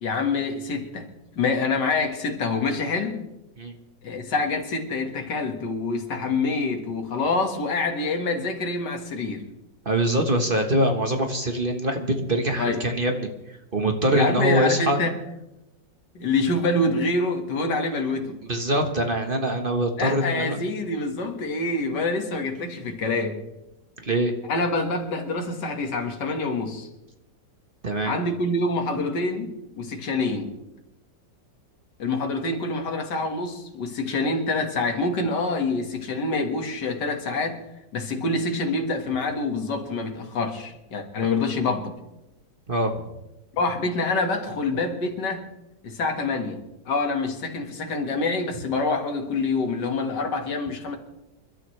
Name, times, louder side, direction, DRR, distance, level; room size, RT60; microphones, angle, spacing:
voice 1, 0.0-3.2 4.0-9.4 12.6-12.8 14.1-15.2 16.1-18.4 20.0-23.4 24.5-26.9 28.0-30.5 32.0-37.6 37.9-41.9 43.6-45.5 45.8-51.0, left 3 dB, 70° left, 3 dB, 2.4 m, -26 dB
voice 2, 9.8-13.3 13.7-15.0 18.5-20.6 24.0-24.3 27.8-28.1 42.7-42.9, right 1 dB, 35° right, 5 dB, 1.3 m, -23 dB
28.5 x 12.5 x 3.3 m, 0.92 s
omnidirectional pair, 2.0 m